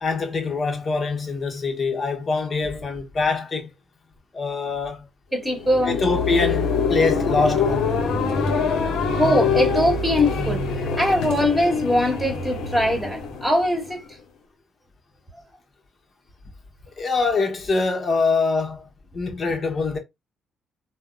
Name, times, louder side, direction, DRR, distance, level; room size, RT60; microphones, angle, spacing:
voice 1, 0.0-3.7 4.3-5.1 5.9-7.9 17.0-18.9 19.1-20.0, left 4 dB, 40° left, 0.9 m, -24 dB
voice 2, 5.3-6.0 9.1-10.6 11.0-14.0, left 1 dB, 5° right, 1.3 m, -21 dB
sound 1, 5.4-14.1, left 5 dB, 80° left, 0.7 m, -24 dB
3.4 x 2.0 x 2.3 m
cardioid pair, 90°, 0 cm